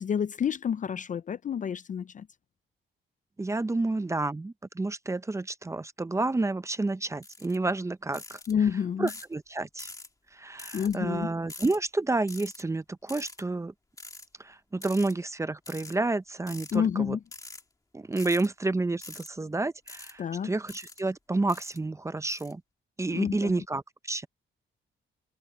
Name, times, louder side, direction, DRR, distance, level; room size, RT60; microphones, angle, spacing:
voice 1, 0.0-2.3 8.5-9.1 10.7-11.3 16.7-17.2 20.2-20.5 23.1-23.6, left 7 dB, 40° left, 0.4 m, -29 dB
voice 2, 3.4-8.4 9.0-9.9 10.3-13.7 14.4-17.2 17.9-22.6 23.0-24.3, right 2 dB, 15° right, 0.5 m, -30 dB
sound 1, 7.2-7.6 8.1-8.5 9.1-9.3 9.8-10.1 10.6-11.0 11.5-11.8 12.3-12.6 13.1-13.4 14.0-14.3 14.8-15.1 15.7-16.0 16.5-16.8 17.3-17.6 18.1-18.5 19.0-19.3 19.9-20.1 20.7-21.0 21.5-21.8 22.3-22.5, left 2 dB, 15° left, 1.8 m, -45 dB
wide cardioid pair, 140°, 21 cm